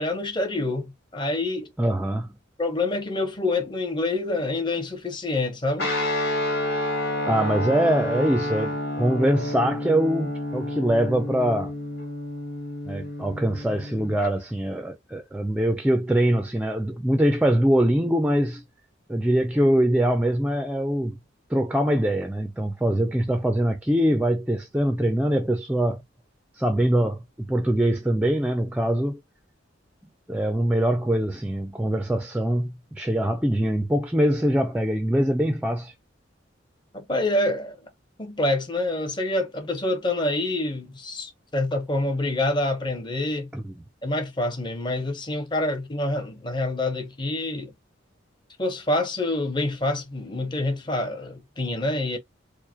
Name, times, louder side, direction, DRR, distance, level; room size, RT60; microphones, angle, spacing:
voice 1, 0.0-1.7 2.6-5.9 36.9-37.8 38.2-43.5 44.0-47.7 48.6-52.2, left 2 dB, 25° left, 0.8 m, -27 dB
voice 2, 1.8-2.3 7.3-11.7 12.9-18.6 19.1-21.2 21.5-26.0 26.5-29.2 30.3-35.9 43.5-43.7, right 1 dB, 5° right, 0.4 m, -23 dB
Guitar, 5.8-14.3, left 1 dB, 55° left, 1.5 m, -29 dB
4.7 x 2.1 x 2.8 m
head